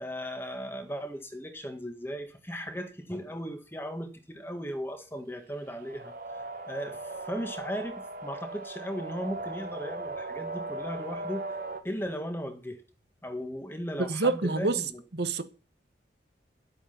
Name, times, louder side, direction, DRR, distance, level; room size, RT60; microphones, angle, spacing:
voice 1, 0.0-6.1 6.7-11.5 11.8-12.8 13.2-15.0, equal, 10° left, 1.7 m, -37 dB
sound 1, 5.6-11.8, right 2 dB, 50° right, 1.5 m, -38 dB
voice 2, 14.0-14.8 15.1-15.4, right 3 dB, 65° right, 1.1 m, -27 dB
11.5 x 8.4 x 5.8 m
head